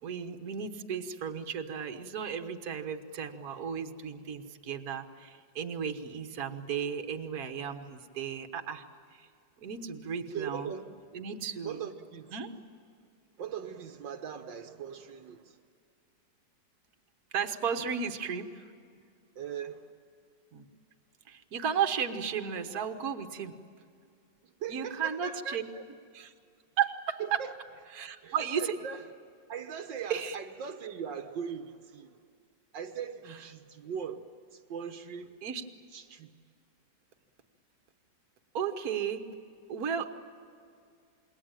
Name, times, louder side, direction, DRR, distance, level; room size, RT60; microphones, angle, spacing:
voice 1, 0.0-8.8 9.1-9.3 9.6-10.7 11.1-11.8 12.3-12.5 17.3-18.7 20.5-20.7 21.3-23.6 24.7-25.6 26.1-26.3 26.8-27.4 27.9-28.8 30.1-30.4 35.4-35.6 38.5-39.2 39.7-40.1, right 7 dB, 55° right, 6 dB, 1.7 m, -34 dB
voice 2, 10.3-11.0 11.6-12.4 13.4-15.6 19.4-19.8 24.6-25.8 27.2-27.5 28.2-29.0 29.5-32.2 32.7-34.3 34.5-35.4 35.9-36.3, right 7 dB, 80° right, 7 dB, 1.8 m, -40 dB
27.5 x 22.0 x 9.0 m, 2.3 s
omnidirectional pair, 2.0 m